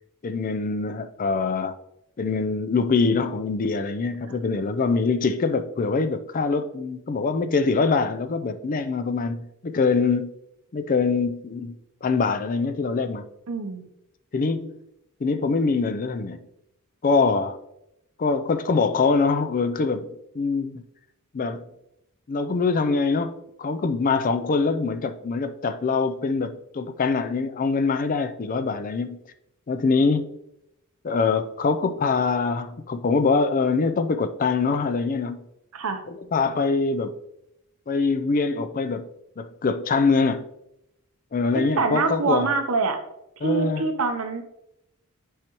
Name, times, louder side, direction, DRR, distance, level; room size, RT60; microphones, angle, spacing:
voice 1, 0.2-1.7 2.2-10.3 10.7-11.7 12.0-13.2 14.3-14.8 15.2-16.4 17.0-17.6 18.2-20.8 21.3-21.6 22.3-29.2 29.7-30.4 31.0-35.4 36.1-37.1 37.9-39.1 39.4-40.4 41.3-42.5 43.4-43.8, left 4 dB, 40° left, 0.4 m, -24 dB
voice 2, 13.5-13.9 35.7-36.0 41.5-43.0 43.4-44.4, right 4 dB, 70° right, 0.7 m, -25 dB
8.8 x 4.8 x 3.0 m
head